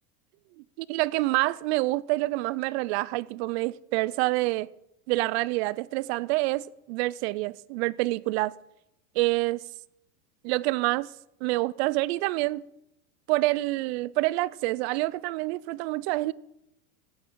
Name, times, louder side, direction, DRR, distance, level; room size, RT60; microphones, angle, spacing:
voice 1, 0.8-4.7 5.1-8.5 9.2-9.6 10.4-11.1 11.4-12.6 13.3-16.3, right 20 dB, 50° right, 0.5 m, -27 dB
15.5 x 8.6 x 4.6 m
supercardioid pair, 135°, 44 cm